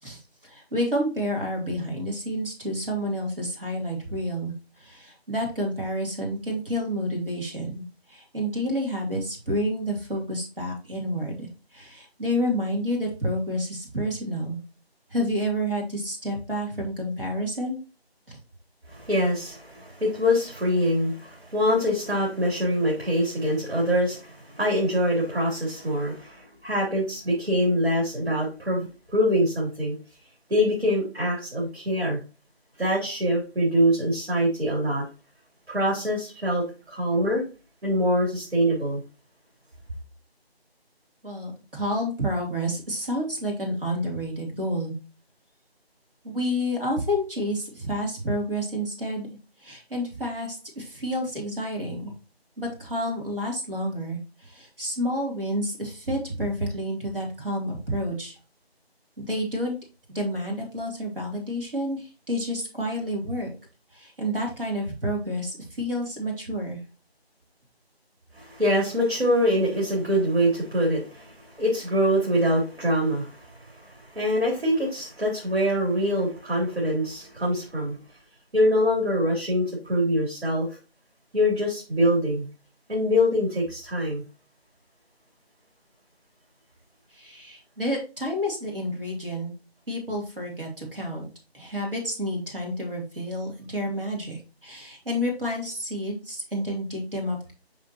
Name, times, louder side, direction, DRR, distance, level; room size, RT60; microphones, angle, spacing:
voice 1, 0.0-4.5 4.8-14.6 15.1-17.8 18.3-18.4 41.2-44.9 46.2-49.3 49.6-52.1 52.6-58.4 59.2-59.8 60.1-63.5 63.9-66.8 87.1-89.5 89.9-91.3 91.5-97.5, equal, 60° right, 3.1 m, -29 dB
voice 2, 18.9-30.0 30.5-32.2 32.8-35.0 35.7-37.4 37.8-39.0 68.3-78.0 78.5-80.7 81.3-82.5 82.9-84.2, equal, 75° right, 3.5 m, -24 dB
6.1 x 5.5 x 3.0 m
figure-of-eight pair, 170°, 32 cm